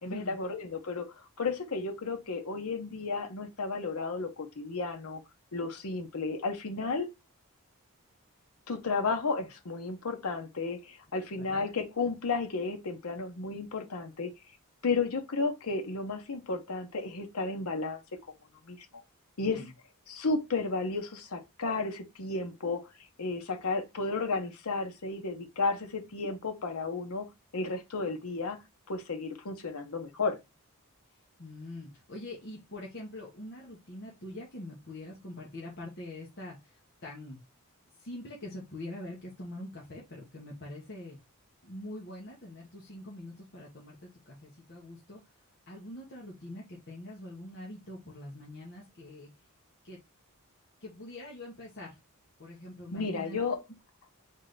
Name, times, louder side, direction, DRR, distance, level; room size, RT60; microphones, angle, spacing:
voice 1, 0.0-5.2 5.5-7.1 8.7-14.3 14.8-18.0 18.7-18.9 19.4-19.7 20.1-22.9 23.2-28.6 28.9-30.4 52.9-53.6, left 3 dB, 80° left, 0.9 m, -33 dB
voice 2, 19.4-19.7 31.4-37.4 38.0-41.2 41.6-45.2 45.7-49.3 49.8-50.0 50.8-52.0 52.4-53.4, left 1 dB, 50° left, 1.1 m, -44 dB
3.7 x 3.2 x 3.8 m
head